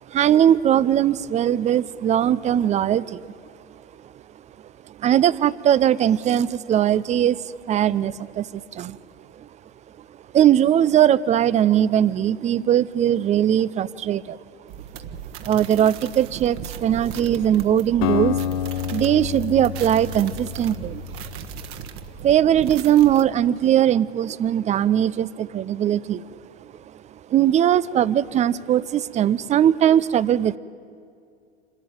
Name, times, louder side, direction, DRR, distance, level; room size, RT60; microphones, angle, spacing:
voice 1, 0.1-3.3 4.9-9.0 9.4-9.5 10.3-14.4 15.4-18.4 18.9-21.0 22.2-26.8 27.3-30.6, right 10 dB, 20° right, 19 dB, 0.5 m, -20 dB
sound 1, 14.7-23.2, right 8 dB, 45° right, 1.4 m, -37 dB
Acoustic guitar, 18.0-22.1, left 10 dB, 65° left, 0.6 m, -29 dB
27.0 x 13.0 x 9.2 m, 2.3 s
figure-of-eight pair, 85°, 33 cm